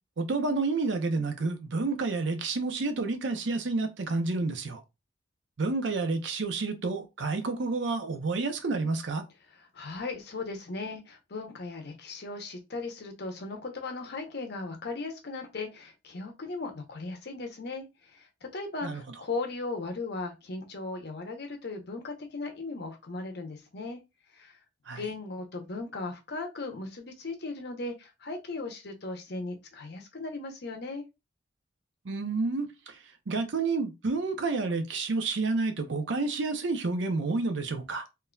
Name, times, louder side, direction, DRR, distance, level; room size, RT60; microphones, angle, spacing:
voice 1, 0.2-4.8 5.6-9.2 18.8-19.0 24.9-25.0 32.1-32.9 33.3-38.0, right 3 dB, 65° right, 0.6 m, -29 dB
voice 2, 9.6-17.8 18.1-24.0 24.3-24.6 25.0-31.0, left 3 dB, 55° left, 0.8 m, -37 dB
3.7 x 2.6 x 2.2 m
head